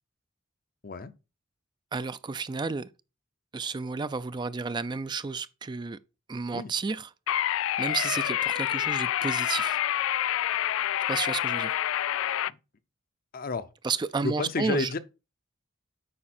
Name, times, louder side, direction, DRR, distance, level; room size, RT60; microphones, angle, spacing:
voice 1, 1.9-2.9 3.5-6.0 6.3-7.1 7.8-9.8 11.1-11.7 13.8-14.9, right 4 dB, 20° right, 0.3 m, -32 dB
sound 1, 7.3-12.5, left 12 dB, 85° left, 0.3 m, -27 dB
voice 2, 13.3-13.7 14.2-15.0, left 3 dB, 45° left, 0.7 m, -31 dB
8.6 x 5.1 x 4.3 m
head